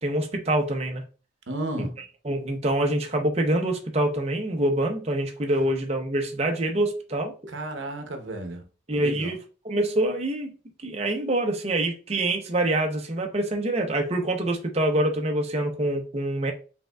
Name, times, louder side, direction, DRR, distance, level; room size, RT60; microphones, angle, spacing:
voice 1, 0.0-1.0 1.8-1.9 2.2-7.3 8.9-9.4 9.6-10.5 10.8-16.5, right 1 dB, 35° right, 0.6 m, -25 dB
voice 2, 1.5-2.0 7.5-8.7 9.0-9.3, right 1 dB, 75° right, 0.8 m, -33 dB
5.0 x 3.5 x 2.2 m
head